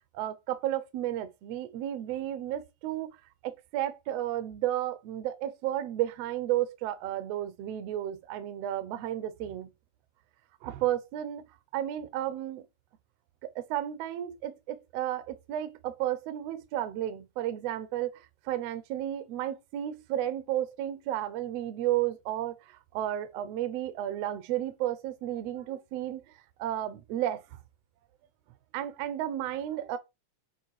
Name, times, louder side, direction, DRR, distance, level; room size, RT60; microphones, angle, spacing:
voice 1, 0.1-3.1 3.4-9.7 10.6-11.5 11.7-12.6 13.5-22.6 22.9-26.2 26.6-27.4 28.7-30.0, right 12 dB, 80° right, 1.4 m, -32 dB
8.4 x 3.1 x 4.7 m
omnidirectional pair, 4.0 m